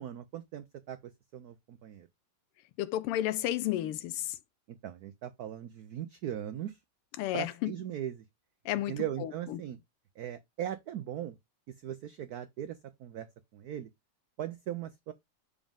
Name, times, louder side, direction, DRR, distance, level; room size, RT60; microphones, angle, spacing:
voice 1, 0.0-2.1 4.7-6.8 7.3-8.2 8.9-9.8 10.2-11.4 11.8-13.3 13.5-13.9 14.4-15.1, right 11 dB, 85° right, 0.8 m, -39 dB
voice 2, 2.8-4.4 7.2-7.7 8.6-9.6, left 13 dB, 90° left, 1.6 m, -32 dB
7.1 x 5.1 x 3.5 m
omnidirectional pair, 2.4 m